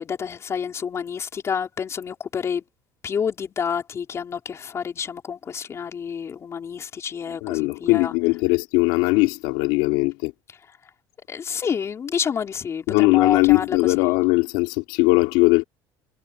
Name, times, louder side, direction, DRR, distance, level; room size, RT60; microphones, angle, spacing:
voice 1, 0.0-2.6 3.0-8.1 11.3-13.8, left 7 dB, 35° left, 4.9 m, -29 dB
voice 2, 7.3-10.3 12.9-15.6, left 24 dB, 90° left, 3.8 m, -20 dB
cardioid pair, 125°, 9 cm